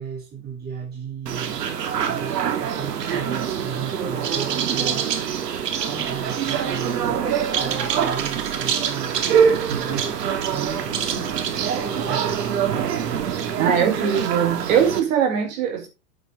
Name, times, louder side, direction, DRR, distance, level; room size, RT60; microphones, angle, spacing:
voice 1, 0.0-1.6 1.9-5.3 5.7-7.2 7.5-9.2 9.7-10.2 10.5-12.3, right 6 dB, 20° right, 3.8 m, -35 dB
sound 1, 1.3-15.0, right 7 dB, 85° right, 2.6 m, -24 dB
voice 2, 9.7-10.0 13.6-15.9, right 8 dB, 55° right, 5.1 m, -21 dB
9.0 x 8.8 x 3.9 m
supercardioid pair, 150°, 47 cm